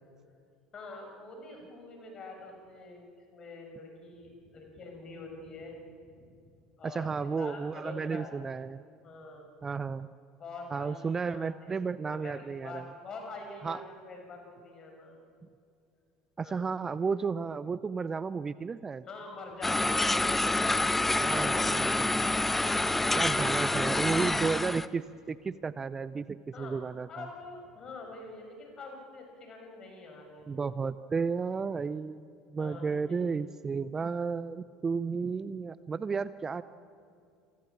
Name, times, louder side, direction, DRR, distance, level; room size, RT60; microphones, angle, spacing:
voice 1, 0.7-3.0 3.3-5.8 6.1-6.3 6.8-8.3 9.0-9.5 10.4-11.8 12.1-15.2 16.4-16.7 19.1-20.8 21.4-23.5 26.5-26.8 27.1-30.5 32.6-33.2, left 3 dB, 35° left, 3 dB, 6.5 m, -45 dB
voice 2, 6.8-8.8 9.6-10.1 10.7-12.9 13.6-13.8 16.4-19.1 21.2-22.3 23.1-27.3 30.5-32.2 32.5-36.6, right 5 dB, 25° right, 16 dB, 0.6 m, -33 dB
sound 1, 19.6-24.9, left 2 dB, 10° left, 0.8 m, -27 dB
28.5 x 23.0 x 7.3 m, 2.4 s
figure-of-eight pair, 65°, 2 cm